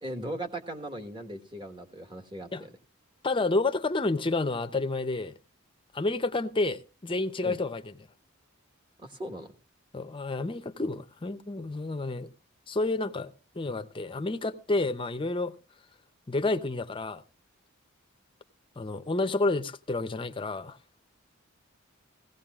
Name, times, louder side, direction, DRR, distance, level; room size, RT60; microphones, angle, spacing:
voice 1, 0.0-2.7 7.4-7.6 9.0-9.5, right 1 dB, 20° right, 1.4 m, -38 dB
voice 2, 3.2-5.4 5.9-7.9 9.9-12.3 12.7-15.5 16.3-17.2 18.8-20.8, left 2 dB, 25° left, 0.7 m, -30 dB
17.5 x 16.0 x 2.4 m
head